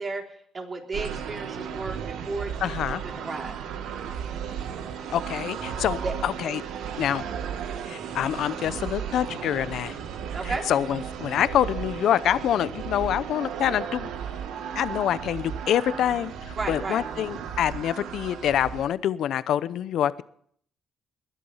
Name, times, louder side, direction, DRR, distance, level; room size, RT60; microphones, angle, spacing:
voice 1, 0.0-3.6 6.0-6.1 10.3-10.7 16.6-17.1, right 3 dB, 35° right, 2 dB, 3.6 m, -34 dB
sound 1, 0.9-18.8, right 8 dB, 85° right, 1.6 m, -35 dB
voice 2, 2.6-3.0 5.1-6.6 7.0-7.2 7.9-10.0 10.4-14.1 14.7-20.2, left 10 dB, 75° left, 16 dB, 0.7 m, -26 dB
20.5 x 11.0 x 5.7 m, 0.62 s
cardioid pair, 90°, 0 cm